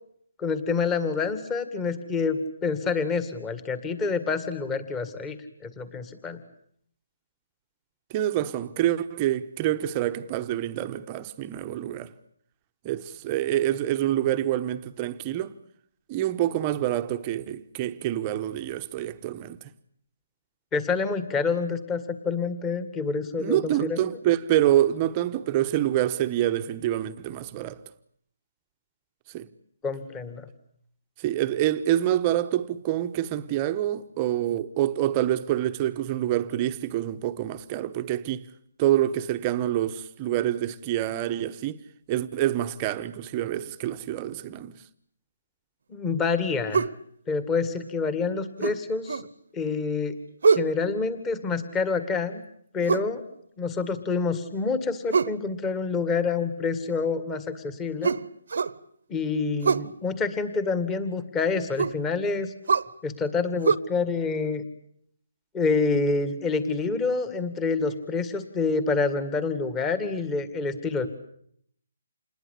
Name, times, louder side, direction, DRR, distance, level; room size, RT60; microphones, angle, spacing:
voice 1, 0.4-6.4 20.7-24.0 29.8-30.5 45.9-46.9 47.3-49.2 49.5-50.2 50.5-52.4 52.7-53.2 53.6-58.1 59.1-62.5 63.0-64.7 65.5-71.1, left 4 dB, 10° left, 2.1 m, -27 dB
voice 2, 8.1-12.1 12.8-15.5 16.1-19.7 23.4-27.8 29.3-29.5 31.2-38.4 38.8-41.8 42.1-44.8, right 12 dB, 20° right, 1.1 m, -26 dB
sound 1, 46.7-47.0 48.6-49.3 50.4-50.7 52.8-53.1 55.1-55.4 58.0-58.8 59.6-59.9 61.8-62.0 62.7-62.9 63.6-63.8, right 5 dB, 65° right, 1.1 m, -23 dB
28.0 x 21.0 x 8.4 m
hypercardioid pair, 165°, 0 cm